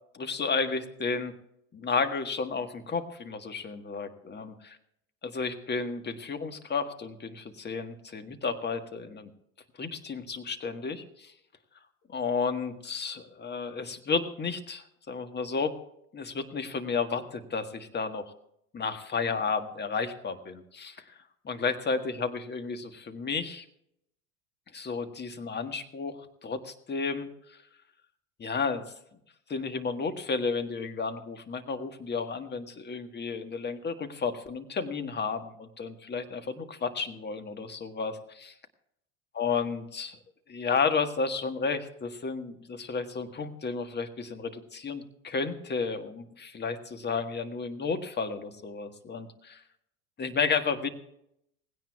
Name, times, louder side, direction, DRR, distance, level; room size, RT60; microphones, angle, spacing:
voice 1, 0.1-1.3 1.7-4.8 5.3-9.3 9.8-11.3 12.1-15.7 16.1-18.2 18.7-21.2 21.4-23.6 24.7-27.6 28.4-28.9 29.5-38.5 39.4-40.2 40.5-49.6 50.2-50.9, left 5 dB, 25° left, 8 dB, 1.6 m, -32 dB
19.5 x 16.5 x 2.4 m, 0.77 s
hypercardioid pair, 75°, 41 cm